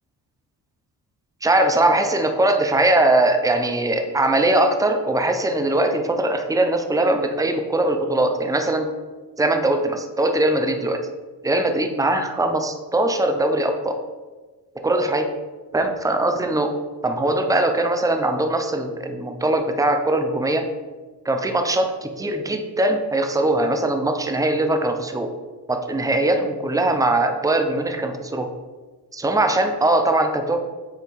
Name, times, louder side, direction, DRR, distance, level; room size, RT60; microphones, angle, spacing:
voice 1, 1.4-8.9 9.4-11.1 11.4-14.0 14.7-15.3 15.7-16.8 17.0-20.7 21.2-25.4 25.7-28.5 29.1-30.6, right 2 dB, 10° right, 6 dB, 0.8 m, -21 dB
8.2 x 3.4 x 4.6 m, 1.3 s
cardioid pair, 75°, 40 cm